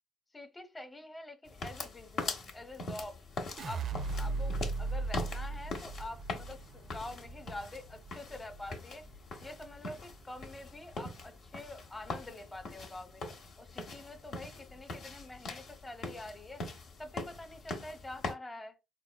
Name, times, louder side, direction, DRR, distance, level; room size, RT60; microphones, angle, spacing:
voice 1, 0.3-3.2 3.6-3.8 4.1-9.1 9.4-13.2 13.6-16.6 17.0-18.8, left 2 dB, 20° left, 0.7 m, -46 dB
sound 1, 1.5-18.3, left 2 dB, 60° left, 0.7 m, -43 dB
sound 2, 3.6-9.8 10.1-10.7, right 3 dB, 55° right, 0.4 m, -38 dB
4.0 x 2.0 x 2.2 m
hypercardioid pair, 60°, 0 cm